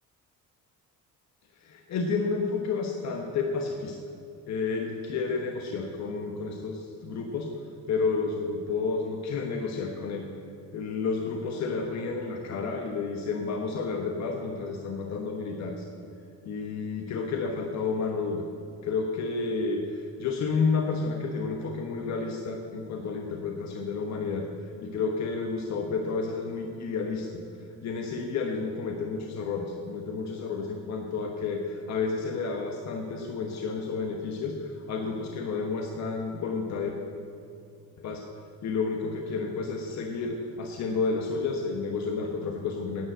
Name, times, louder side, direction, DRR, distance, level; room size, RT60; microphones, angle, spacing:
voice 1, 1.6-4.0 4.5-7.5 7.9-10.3 10.7-15.9 16.4-18.5 18.8-24.5 24.8-27.4 27.8-37.0 38.0-38.2 38.6-43.1, left 4 dB, 50° left, 3 dB, 1.2 m, -31 dB
10.5 x 9.5 x 7.9 m, 2.6 s
cardioid pair, 135°, 34 cm